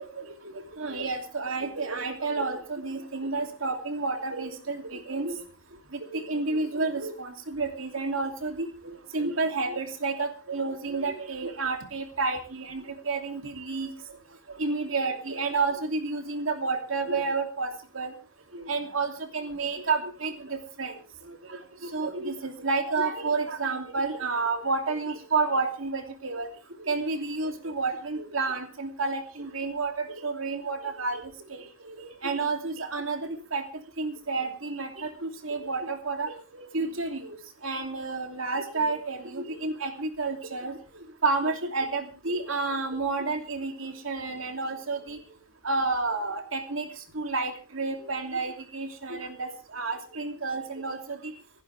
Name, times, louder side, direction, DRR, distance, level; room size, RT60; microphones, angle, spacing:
voice 1, 0.0-5.4 5.9-13.9 14.6-18.1 18.5-21.0 21.3-26.5 26.8-31.2 31.5-33.6 34.0-37.4 37.6-45.2 45.6-46.9 47.1-51.3, right 3 dB, 85° right, 5 dB, 2.9 m, -30 dB
26.5 x 11.0 x 3.4 m, 0.33 s
head